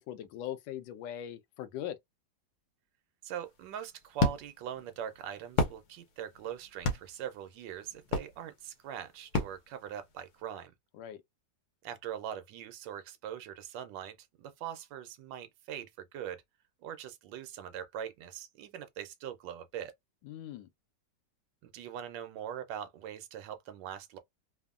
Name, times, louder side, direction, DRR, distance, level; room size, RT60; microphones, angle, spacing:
voice 1, 0.1-2.0 11.0-11.2 20.2-20.7, left 11 dB, 90° left, 1.3 m, -40 dB
voice 2, 3.2-10.7 11.8-16.4 16.8-19.9 21.6-24.2, right 9 dB, 85° right, 1.3 m, -42 dB
sound 1, 3.5-10.4, left 3 dB, 70° left, 1.2 m, -35 dB
3.4 x 2.0 x 2.3 m
omnidirectional pair, 1.9 m